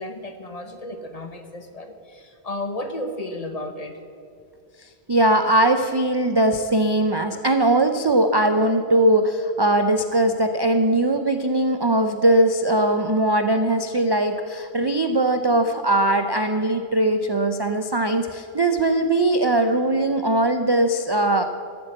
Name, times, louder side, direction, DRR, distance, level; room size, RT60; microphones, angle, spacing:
voice 1, 0.0-4.0, left 1 dB, 35° left, 7 dB, 1.0 m, -33 dB
voice 2, 5.1-21.4, right 1 dB, 35° right, 7 dB, 0.4 m, -20 dB
13.0 x 8.6 x 7.4 m, 2.4 s
omnidirectional pair, 1.2 m